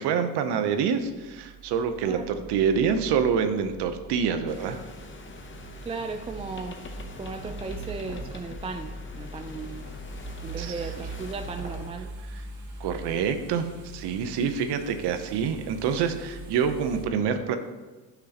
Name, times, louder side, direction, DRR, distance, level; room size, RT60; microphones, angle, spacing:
voice 1, 0.0-4.8 10.6-11.1 12.3-12.4 12.8-17.6, right 7 dB, 85° right, 9 dB, 0.8 m, -27 dB
sound 1, 0.9-17.0, right 2 dB, 60° right, 1.6 m, -42 dB
sound 2, 4.5-11.9, left 3 dB, 30° left, 0.8 m, -45 dB
voice 2, 5.8-6.8 7.2-9.9 10.4-12.1, right 4 dB, 15° right, 6 dB, 0.3 m, -36 dB
sound 3, 8.1-8.3 9.9-10.1 11.5-11.9 12.3-12.4, right 2 dB, 40° right, 1.8 m, -44 dB
9.8 x 6.1 x 2.9 m, 1.2 s
cardioid pair, 105°, 39 cm